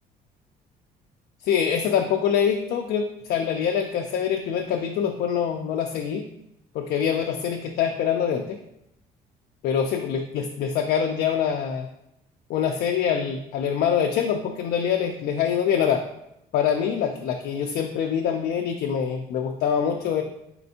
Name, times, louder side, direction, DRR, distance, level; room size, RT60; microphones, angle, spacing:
voice 1, 1.4-6.2 6.7-8.6 9.6-11.9 12.5-16.0 16.5-20.2, left 8 dB, 70° left, 3 dB, 0.4 m, -24 dB
4.2 x 3.3 x 2.8 m, 0.82 s
cardioid pair, 110°, 17 cm